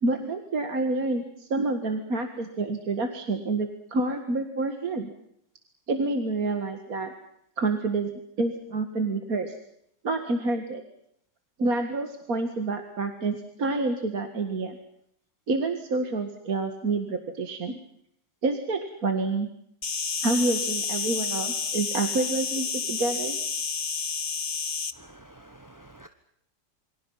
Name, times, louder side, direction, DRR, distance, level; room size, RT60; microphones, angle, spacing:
voice 1, 0.0-5.1 5.9-7.1 7.6-8.1 8.4-9.6 10.0-10.8 11.6-14.8 15.5-17.8 18.4-19.5 20.2-23.4, right 3 dB, 50° right, 6 dB, 2.2 m, -28 dB
Insect, 19.8-24.9, left 5 dB, 35° left, 1.0 m, -30 dB
voice 2, 25.0-26.1, right 1 dB, 15° right, 7 dB, 0.9 m, -50 dB
28.0 x 25.0 x 5.7 m, 0.74 s
omnidirectional pair, 2.0 m